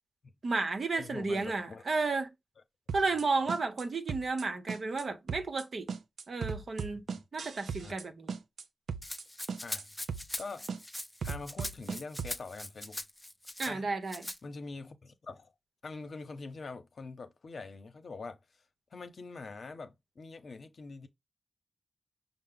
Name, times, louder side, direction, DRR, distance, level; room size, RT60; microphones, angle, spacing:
voice 1, 0.4-2.3 2.9-5.9 6.3-7.0 7.3-8.3 13.6-14.3, right 3 dB, 65° right, 0.8 m, -32 dB
voice 2, 1.0-1.8 6.9-7.2 7.8-8.0 9.6-9.9 10.4-10.7 11.2-13.0 13.6-13.9 14.4-15.5 15.8-18.4 18.9-21.1, left 3 dB, 70° left, 0.7 m, -44 dB
sound 1, 2.9-3.2 3.5-4.4 4.7-5.0 5.3-5.6 5.9-8.0 8.3-8.6 8.9-9.2 9.5-9.8 10.1-10.4 10.7-12.4, right 6 dB, 90° right, 0.4 m, -37 dB
Rattle (instrument), 9.0-13.7 14.1-14.4, left 1 dB, 10° left, 0.5 m, -41 dB
5.6 x 2.0 x 3.7 m
cardioid pair, 60°, 0 cm